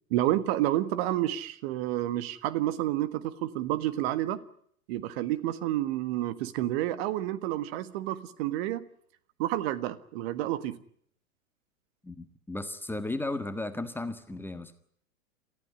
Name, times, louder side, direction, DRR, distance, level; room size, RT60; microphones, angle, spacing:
voice 1, 0.1-4.4 4.9-8.8 9.4-10.8, right 14 dB, 45° right, 13 dB, 1.6 m, -29 dB
voice 2, 12.0-14.7, left 2 dB, 5° left, 9 dB, 1.5 m, -35 dB
28.5 x 14.5 x 9.9 m, 0.65 s
figure-of-eight pair, 105°, 42 cm